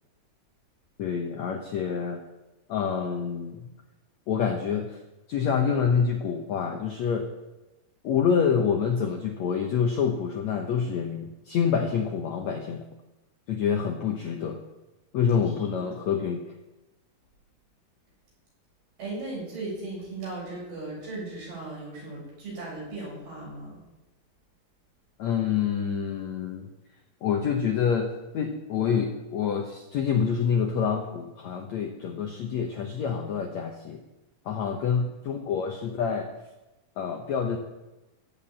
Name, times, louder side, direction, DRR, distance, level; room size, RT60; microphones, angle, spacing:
voice 1, 1.0-2.2 2.7-3.7 4.3-5.0 5.3-7.3 8.0-12.9 13.5-14.6 15.1-16.4 25.2-26.7 27.2-34.0 34.5-36.3 37.0-37.6, left 7 dB, 75° left, 4 dB, 1.7 m, -27 dB
voice 2, 19.0-23.8, right 2 dB, 70° right, -5 dB, 9.1 m, -37 dB
15.0 x 7.6 x 8.8 m, 1.0 s
omnidirectional pair, 4.6 m